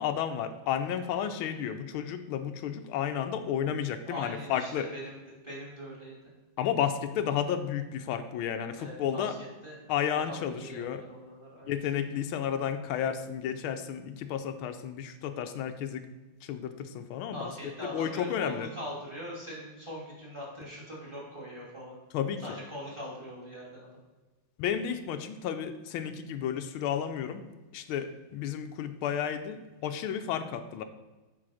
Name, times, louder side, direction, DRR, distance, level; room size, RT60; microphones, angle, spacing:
voice 1, 0.0-4.9 6.6-9.3 9.9-11.0 11.7-16.1 16.4-18.7 22.1-22.4 24.6-27.4 27.7-30.8, left 9 dB, 85° left, 9 dB, 1.4 m, -32 dB
voice 2, 4.1-6.2 8.7-9.8 10.1-11.7 17.3-22.0 22.4-23.9, equal, 15° right, -4 dB, 2.2 m, -42 dB
7.5 x 3.9 x 6.2 m, 1.2 s
omnidirectional pair, 2.3 m